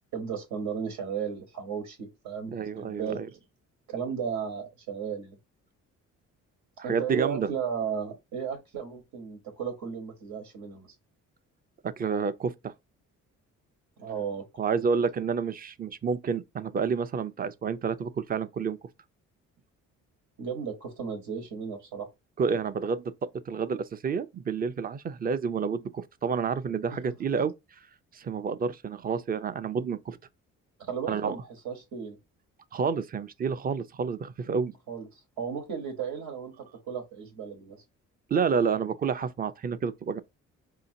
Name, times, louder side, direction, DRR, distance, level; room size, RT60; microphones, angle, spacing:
voice 1, 0.1-3.2 3.9-5.4 6.8-10.9 14.0-14.6 20.4-22.1 30.8-32.2 34.9-36.5 36.9-37.8, right 7 dB, 80° right, 1.3 m, -35 dB
voice 2, 2.5-3.3 6.8-7.5 11.8-12.7 14.6-18.8 22.4-23.1 23.5-27.5 28.1-30.2 31.1-31.4 32.7-34.7 38.3-40.2, right 6 dB, 30° right, 0.4 m, -29 dB
4.9 x 2.8 x 2.6 m
cardioid pair, 90°, 30 cm